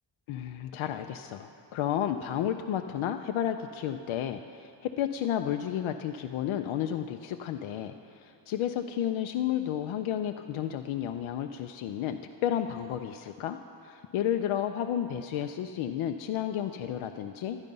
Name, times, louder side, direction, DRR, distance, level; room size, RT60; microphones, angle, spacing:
voice 1, 0.3-17.6, left 10 dB, 80° left, 6 dB, 0.6 m, -32 dB
12.0 x 9.9 x 5.3 m, 2.6 s
cardioid pair, 85°, 48 cm